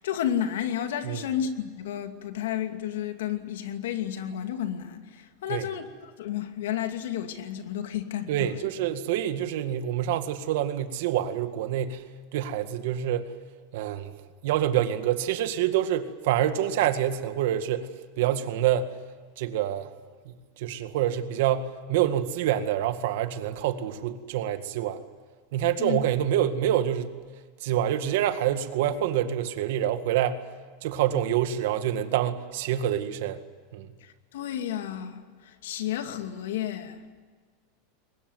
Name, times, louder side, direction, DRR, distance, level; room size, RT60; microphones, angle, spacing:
voice 1, 0.0-8.5 25.8-26.0 34.0-37.0, left 10 dB, 85° left, 2.5 m, -32 dB
voice 2, 8.3-12.0 12.3-13.3 13.7-17.9 18.2-18.9 19.4-19.9 20.3-25.0 25.5-27.1 27.6-30.4 30.8-33.4 33.7-33.9, right 11 dB, 65° right, 1.9 m, -27 dB
22.5 x 21.0 x 9.4 m
supercardioid pair, 155°, 0 cm